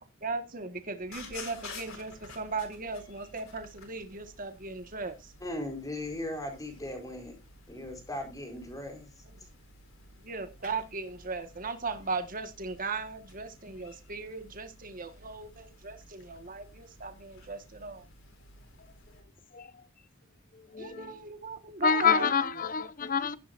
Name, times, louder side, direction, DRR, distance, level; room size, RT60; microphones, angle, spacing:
voice 1, 0.2-5.3 10.2-18.0 20.8-22.3, right 4 dB, 40° right, 1.7 m, -37 dB
sound 1, 1.0-19.2, left 3 dB, 75° left, 4.0 m, -52 dB
voice 2, 5.4-7.3 7.7-9.1, left 1 dB, 15° left, 4.5 m, -38 dB
voice 3, 20.7-21.1 21.8-23.4, left 6 dB, 40° left, 0.9 m, -27 dB
15.0 x 11.0 x 2.6 m
head